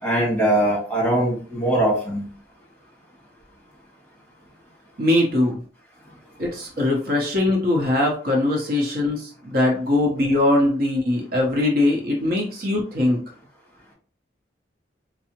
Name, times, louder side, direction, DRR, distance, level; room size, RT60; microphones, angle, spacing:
voice 1, 0.0-2.2, right 1 dB, 10° left, -5 dB, 1.6 m, -21 dB
voice 2, 5.0-5.6 6.4-13.2, left 2 dB, 55° right, -1 dB, 0.8 m, -21 dB
4.6 x 2.0 x 2.9 m, 0.42 s
head